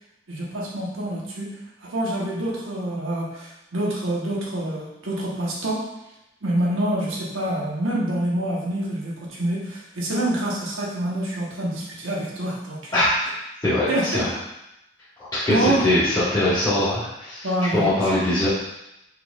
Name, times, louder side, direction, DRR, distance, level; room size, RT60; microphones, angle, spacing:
voice 1, 0.3-5.9 6.4-13.0 13.9-14.3 15.5-15.9 17.4-17.9, right 1 dB, 80° right, -4 dB, 1.2 m, -26 dB
voice 2, 13.6-14.3 15.3-17.5 17.7-18.5, left 1 dB, 15° left, -14 dB, 1.3 m, -21 dB
4.5 x 4.1 x 2.4 m, 0.89 s
head